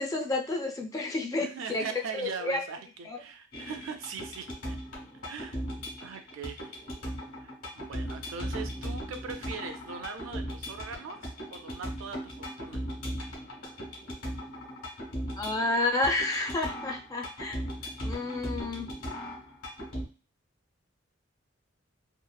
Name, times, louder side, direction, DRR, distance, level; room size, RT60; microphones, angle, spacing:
voice 1, 0.0-1.8 2.1-2.6 3.1-3.2 15.4-17.6 18.0-18.9, left 2 dB, 15° left, 2 dB, 0.4 m, -30 dB
voice 2, 1.4-4.5 5.1-5.6 6.0-6.8 7.4-12.8, right 5 dB, 70° right, 7 dB, 0.4 m, -41 dB
sound 1, 3.5-20.0, equal, 80° left, 1.2 m, -38 dB
2.9 x 2.4 x 2.2 m, 0.33 s
head